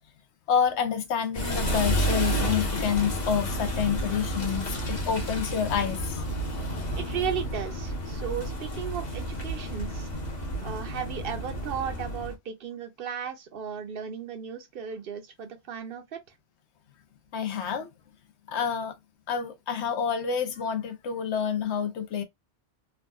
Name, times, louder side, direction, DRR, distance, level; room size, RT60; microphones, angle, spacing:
voice 1, 0.5-6.2 17.3-17.9 18.5-18.9 19.3-22.2, left 7 dB, 75° left, 0.9 m, -28 dB
sound 1, 1.3-12.3, equal, 40° left, 1.0 m, -31 dB
voice 2, 6.9-10.1 10.6-16.2, right 7 dB, 60° right, 0.8 m, -35 dB
3.6 x 2.3 x 2.3 m
omnidirectional pair, 1.2 m